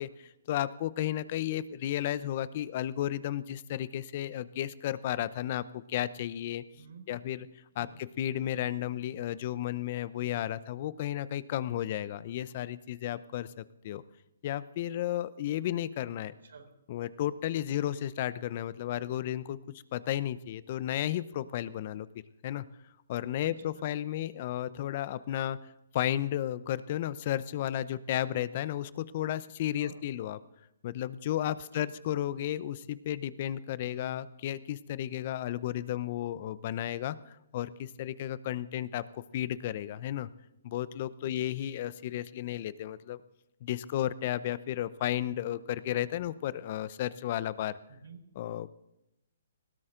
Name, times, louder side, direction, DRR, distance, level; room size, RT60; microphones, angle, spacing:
voice 1, 0.0-6.6 7.1-7.5 7.8-14.0 14.4-16.3 16.9-19.6 19.9-22.1 22.4-22.7 23.1-25.6 25.9-30.4 30.8-40.3 40.6-43.2 43.6-47.8 48.4-48.7, left 12 dB, 45° left, 17 dB, 0.7 m, -33 dB
voice 2, 6.7-7.1 7.8-8.0 16.2-16.7 23.4-23.9 29.8-30.0 31.6-31.9 41.2-41.5 47.9-48.3, right 5 dB, 75° right, 4 dB, 4.2 m, -51 dB
19.5 x 17.0 x 3.9 m, 0.86 s
hypercardioid pair, 145°, 0 cm